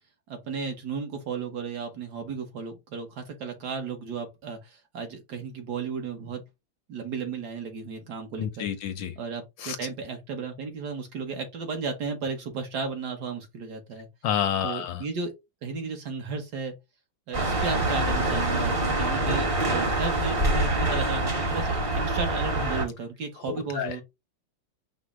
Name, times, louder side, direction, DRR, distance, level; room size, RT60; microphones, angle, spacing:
voice 1, 0.3-6.4 6.9-8.7 9.2-14.1 14.6-15.3 15.6-16.7 17.3-24.0, right 5 dB, 60° right, 1.2 m, -34 dB
voice 2, 8.4-9.1 9.6-9.8 14.2-15.0 23.5-24.0, left 9 dB, 75° left, 1.2 m, -29 dB
sound 1, 17.3-22.8, right 2 dB, 30° right, 0.6 m, -25 dB
5.2 x 2.0 x 4.6 m
omnidirectional pair, 2.3 m